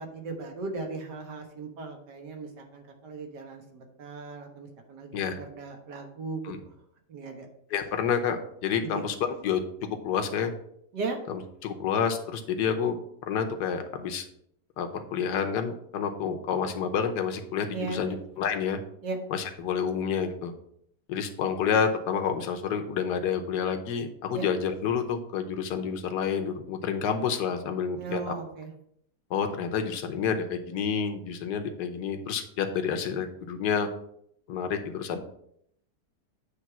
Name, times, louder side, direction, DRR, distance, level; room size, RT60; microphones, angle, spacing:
voice 1, 0.0-6.5 7.1-7.5 8.8-9.0 10.9-11.2 17.7-18.2 19.0-19.2 24.3-24.4 28.0-28.7, right 4 dB, 75° right, 3 dB, 1.9 m, -37 dB
voice 2, 7.7-9.6 10.0-10.5 11.3-13.0 13.3-14.3 14.8-18.8 19.3-20.5 21.1-28.3 29.3-33.9 34.5-35.2, left 7 dB, 75° left, 6 dB, 1.4 m, -29 dB
8.3 x 3.3 x 6.0 m, 0.70 s
omnidirectional pair, 1.8 m